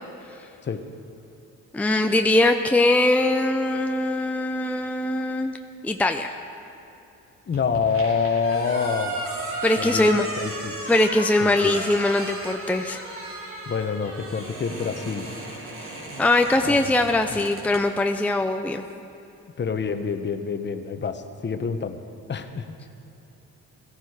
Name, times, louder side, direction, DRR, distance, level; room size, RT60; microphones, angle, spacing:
voice 1, 1.7-5.6 5.8-6.3 9.6-10.3 10.9-13.0 16.2-18.8, left 2 dB, 5° left, 5 dB, 0.6 m, -21 dB
voice 2, 7.5-9.2 9.8-10.1 10.4-10.8 11.4-11.8 13.7-15.3 16.6-16.9 17.4-17.5 19.6-22.0 22.3-22.8, left 5 dB, 35° left, 8 dB, 1.0 m, -27 dB
sound 1, 7.5-17.8, right 1 dB, 45° right, 3.2 m, -35 dB
17.0 x 14.5 x 4.9 m, 2.8 s
cardioid pair, 90°, 30 cm